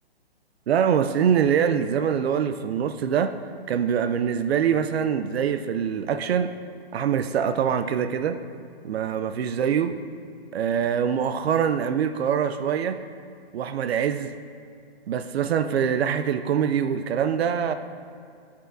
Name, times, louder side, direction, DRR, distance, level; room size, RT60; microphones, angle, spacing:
voice 1, 0.7-3.4 3.7-6.5 6.9-8.4 8.8-9.9 10.5-13.0 13.5-14.3 15.1-17.7, right 8 dB, 85° right, 9 dB, 0.5 m, -24 dB
12.5 x 5.6 x 2.5 m, 2.4 s
hypercardioid pair, 170°, 30 cm